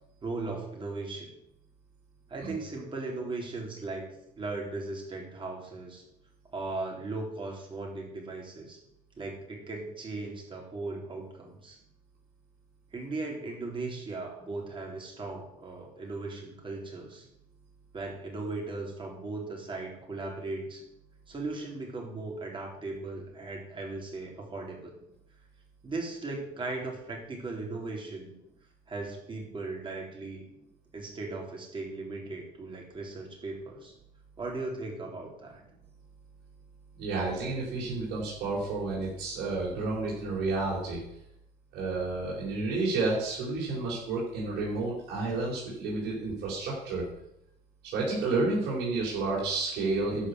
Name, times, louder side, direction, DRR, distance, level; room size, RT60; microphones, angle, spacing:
voice 1, 0.2-1.3 2.3-4.1 4.4-6.0 6.5-8.8 9.2-11.8 12.9-17.3 17.9-20.8 21.3-24.9 25.8-28.3 28.9-30.5 30.9-33.9 34.4-35.6, right 3 dB, 30° right, -1 dB, 4.0 m, -37 dB
voice 2, 37.0-41.0 41.7-47.0 47.9-50.3, right 3 dB, 80° right, -6 dB, 4.0 m, -30 dB
11.5 x 5.6 x 8.1 m, 0.81 s
cardioid pair, 110°, 17 cm